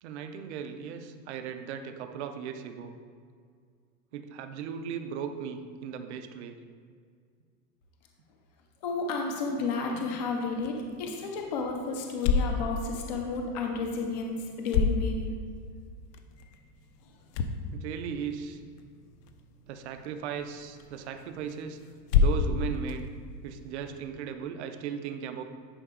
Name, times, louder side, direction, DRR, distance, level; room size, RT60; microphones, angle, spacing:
voice 1, 0.0-3.0 4.1-6.6 17.7-18.6 19.7-21.8 22.1-23.1 23.4-25.4, right 7 dB, 45° right, 8 dB, 0.5 m, -37 dB
voice 2, 8.8-15.2, left 4 dB, 30° left, 1 dB, 0.4 m, -32 dB
sound 1, 10.5-24.1, left 5 dB, 70° left, 0.8 m, -32 dB
9.9 x 4.8 x 3.6 m, 2.1 s
supercardioid pair, 175°, 49 cm